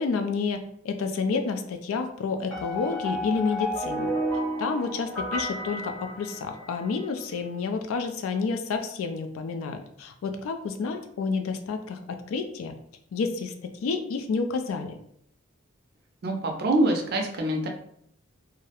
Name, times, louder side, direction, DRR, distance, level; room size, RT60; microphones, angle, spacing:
voice 1, 0.0-4.1 4.6-12.7 13.1-14.9, left 4 dB, 80° left, 7 dB, 0.3 m, -30 dB
sound 1, 2.5-6.8, equal, 5° left, 0.5 m, -31 dB
voice 2, 16.2-17.7, right 1 dB, 45° right, 3 dB, 0.4 m, -25 dB
2.3 x 2.0 x 2.9 m, 0.68 s
head